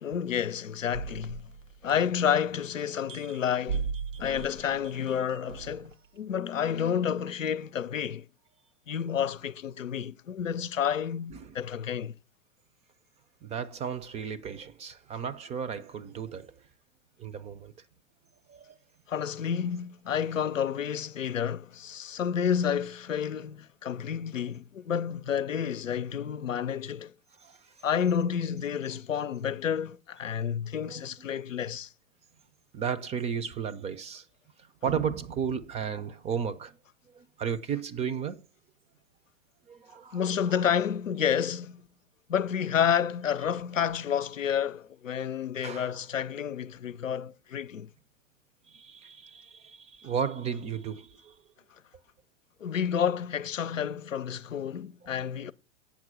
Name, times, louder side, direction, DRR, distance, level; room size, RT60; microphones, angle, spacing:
voice 1, 0.0-1.4 1.8-3.9 4.2-8.3 8.9-12.1 19.1-27.1 27.8-31.9 40.1-41.8 42.3-47.9 52.6-55.5, left 8 dB, 85° left, 0.7 m, -30 dB
sound 1, 0.9-2.5 2.9-5.9, right 6 dB, 80° right, 0.9 m, -37 dB
voice 2, 13.4-16.5 17.2-17.7 18.5-18.7 27.4-27.5 30.8-31.0 32.7-34.2 34.8-36.8 37.1-38.5 39.7-40.2 45.6-46.0 48.7-51.3, right 7 dB, 15° right, 0.5 m, -34 dB
8.6 x 6.0 x 6.2 m
hypercardioid pair, 110°, 38 cm